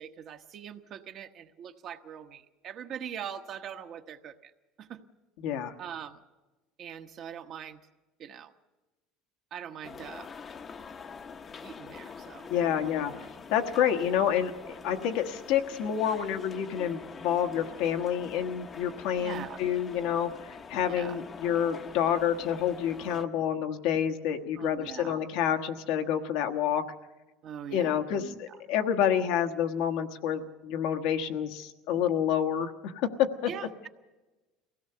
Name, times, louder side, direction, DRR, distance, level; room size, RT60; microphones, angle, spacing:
voice 1, 0.0-4.5 4.8-5.0 5.8-6.2 6.8-7.8 8.2-8.5 9.5-10.3 11.6-12.5 19.2-19.6 20.9-21.2 24.6-25.1 27.4-28.6 33.5-33.9, right 8 dB, 50° right, 7 dB, 1.1 m, -42 dB
voice 2, 5.4-5.7 12.5-13.1 13.5-26.8 27.7-33.5, left 9 dB, 75° left, 6 dB, 1.3 m, -28 dB
sound 1, 9.8-23.3, left 5 dB, 30° left, 0.8 m, -45 dB
23.0 x 17.0 x 6.8 m, 1.1 s
supercardioid pair, 120°, 0 cm